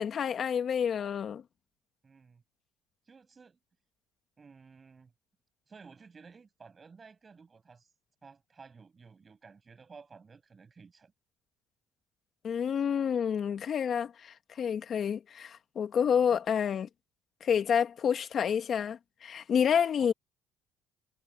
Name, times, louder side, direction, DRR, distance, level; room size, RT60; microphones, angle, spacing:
voice 1, 0.0-1.4 12.4-16.9 17.4-20.1, left 7 dB, 45° left, 1.8 m, -29 dB
voice 2, 2.0-2.4 3.0-3.6 4.4-5.1 5.7-7.9 8.2-11.1 16.3-16.4 20.0-20.1, right 5 dB, 30° right, 7.0 m, -54 dB
cardioid pair, 100°, 0 cm